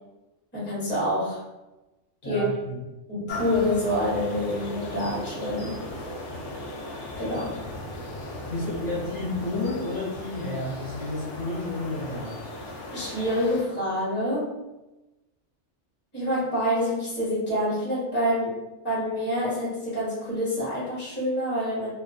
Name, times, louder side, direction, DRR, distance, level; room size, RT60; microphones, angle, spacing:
voice 1, 0.5-1.4 2.2-2.5 3.1-5.8 7.2-7.6 12.9-14.6 16.1-21.9, equal, 10° left, -7 dB, 0.7 m, -27 dB
voice 2, 2.2-2.8 8.5-12.4, left 2 dB, 45° left, -8 dB, 0.8 m, -31 dB
sound 1, 3.3-13.6, left 1 dB, 75° left, 0.9 m, -37 dB
2.2 x 2.2 x 2.5 m, 1.0 s
omnidirectional pair, 1.3 m